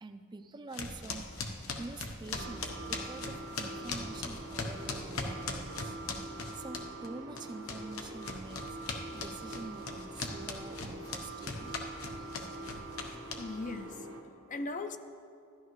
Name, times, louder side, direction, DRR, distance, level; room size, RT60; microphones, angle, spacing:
voice 1, 0.0-1.3 1.8-6.0 6.5-11.7 12.2-12.3, right 3 dB, 20° right, 8 dB, 0.4 m, -46 dB
sound 1, 0.7-7.1 7.4-13.7, left 4 dB, 85° left, 0.9 m, -39 dB
sound 2, 2.3-14.2, right 2 dB, 80° right, 1.2 m, -45 dB
voice 2, 13.4-15.0, left 3 dB, 40° left, 9 dB, 0.4 m, -39 dB
13.0 x 11.5 x 3.1 m, 2.5 s
head